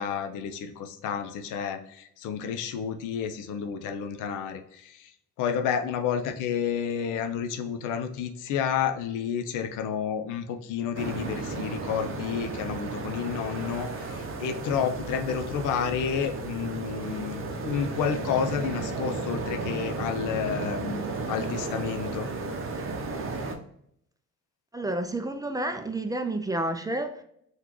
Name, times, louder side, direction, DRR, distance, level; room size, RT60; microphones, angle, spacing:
voice 1, 0.0-5.1 5.4-22.3, left 7 dB, 90° left, 0.5 m, -30 dB
sound 1, 10.9-23.5, right 3 dB, 45° right, 0.7 m, -34 dB
voice 2, 24.7-27.2, right 1 dB, 15° right, 0.3 m, -30 dB
3.7 x 2.4 x 3.0 m
cardioid pair, 90°, 30 cm